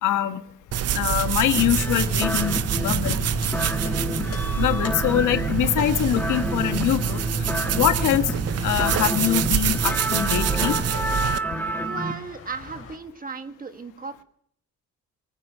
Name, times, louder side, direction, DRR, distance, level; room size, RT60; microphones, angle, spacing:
voice 1, 0.0-0.4 0.9-3.2 4.6-7.2 7.7-8.2 8.6-10.8, left 12 dB, 85° left, 8 dB, 1.4 m, -23 dB
sound 1, 0.7-13.0, left 5 dB, 50° left, 3.8 m, -45 dB
sound 2, 0.7-11.4, right 10 dB, 55° right, 0.7 m, -26 dB
sound 3, 1.6-12.1, equal, 5° left, 1.5 m, -29 dB
voice 2, 11.8-14.2, right 5 dB, 30° right, 8 dB, 1.5 m, -35 dB
23.5 x 9.6 x 6.2 m, 0.66 s
cardioid pair, 90°, 30 cm